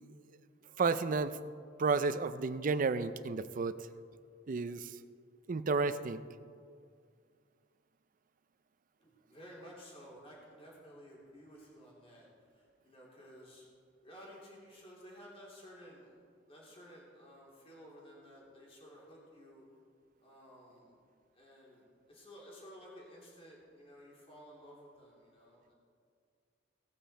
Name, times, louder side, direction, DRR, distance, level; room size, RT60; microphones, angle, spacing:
voice 1, 0.8-1.4 1.8-3.8 4.5-4.9 5.5-6.3, right 4 dB, 45° right, 13 dB, 0.5 m, -31 dB
voice 2, 9.0-12.3 12.5-13.6 14.0-16.1 16.5-19.6 20.2-21.0 21.3-25.8, equal, 30° left, -4 dB, 3.1 m, -54 dB
18.0 x 9.0 x 4.3 m, 2.2 s
head